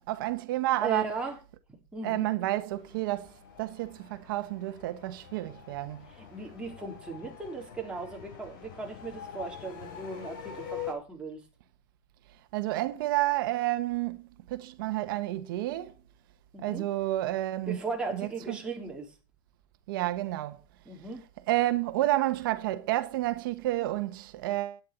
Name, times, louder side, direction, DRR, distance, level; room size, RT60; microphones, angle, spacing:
voice 1, 0.1-1.1 2.0-3.3 3.6-6.1 12.5-15.9 16.6-17.8 18.1-18.6 19.9-20.6 21.5-24.8, right 16 dB, 80° right, 1.4 m, -30 dB
voice 2, 0.8-1.4 1.9-2.2 6.1-11.4 16.5-16.8 17.7-19.1 20.8-21.2, right 3 dB, 10° right, 4.3 m, -37 dB
sound 1, 2.7-10.9, left 9 dB, 75° left, 5.8 m, -45 dB
12.5 x 9.8 x 4.5 m
supercardioid pair, 155°, 11 cm